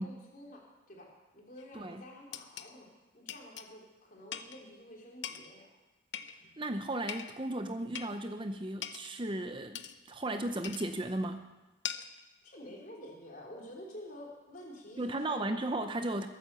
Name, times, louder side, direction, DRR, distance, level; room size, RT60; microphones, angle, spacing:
voice 1, 0.0-2.9 3.1-5.7 12.4-15.7, equal, 40° left, -1 dB, 3.7 m, -49 dB
sound 1, 1.6-1.7 2.3-2.7 3.3-3.7 4.3-4.6 5.2-5.5 6.1-6.6 7.1-7.4 7.9-8.2 8.8-9.1 9.7-10.0 10.6-10.9 11.8-12.2, left 9 dB, 60° left, 0.8 m, -41 dB
voice 2, 1.7-2.0 6.6-11.5 15.0-16.3, right 1 dB, 25° right, 8 dB, 0.6 m, -35 dB
22.0 x 9.1 x 6.9 m, 1.1 s
head